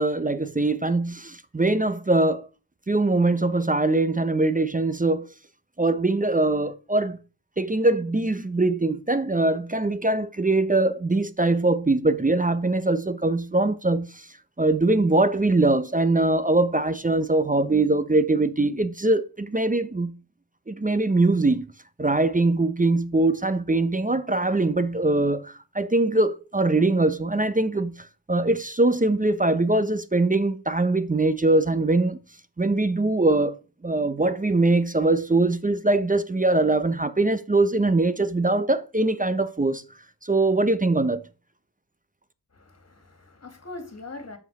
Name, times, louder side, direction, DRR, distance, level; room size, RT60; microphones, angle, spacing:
voice 1, 0.0-2.5 2.9-5.3 5.8-7.2 7.6-14.3 14.6-20.1 20.7-21.7 22.0-32.2 32.6-39.8 40.2-41.2, right 2 dB, 20° right, 0.7 m, -22 dB
voice 2, 42.5-44.4, left 2 dB, 35° left, 2.3 m, -41 dB
8.0 x 6.0 x 4.7 m
cardioid pair, 50°, 42 cm